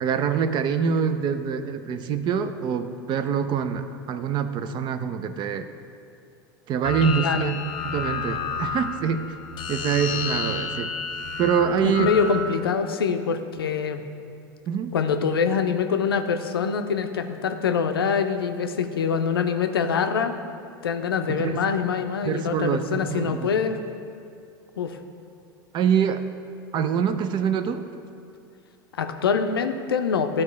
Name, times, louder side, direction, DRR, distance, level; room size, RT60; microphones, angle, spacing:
voice 1, 0.0-5.7 6.7-9.3 9.7-10.9 11.4-12.1 14.7-14.9 21.3-21.7 22.2-23.5 25.7-26.3 26.7-27.8, right 7 dB, 40° right, 10 dB, 0.5 m, -25 dB
sound 1, 6.8-12.4, left 5 dB, 40° left, 0.8 m, -31 dB
voice 2, 7.2-7.5 11.8-14.0 14.9-20.3 20.8-23.8 24.8-25.0 29.0-30.4, left 6 dB, 85° left, 7 dB, 0.5 m, -24 dB
12.0 x 4.3 x 3.2 m, 2.4 s
hypercardioid pair, 85°, 12 cm